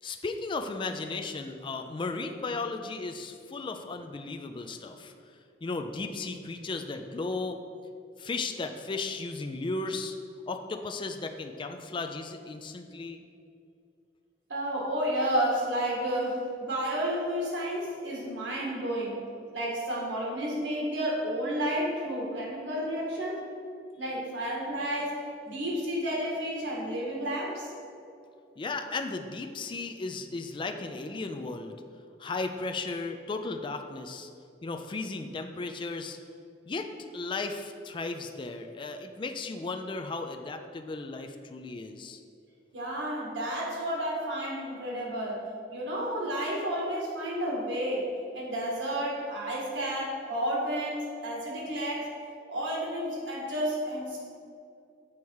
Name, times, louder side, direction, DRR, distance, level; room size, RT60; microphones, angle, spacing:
voice 1, 0.0-5.1 5.6-7.6 8.2-10.2 10.5-13.2 28.6-31.8 32.2-34.3 34.6-36.2 36.7-42.2, left 3 dB, 25° left, 6 dB, 0.4 m, -35 dB
voice 2, 14.5-19.2 19.5-23.4 24.0-27.7 42.7-45.4 45.7-48.1 48.3-52.1 52.5-54.2, equal, 85° right, -3 dB, 1.8 m, -31 dB
7.1 x 4.7 x 4.6 m, 2.5 s
head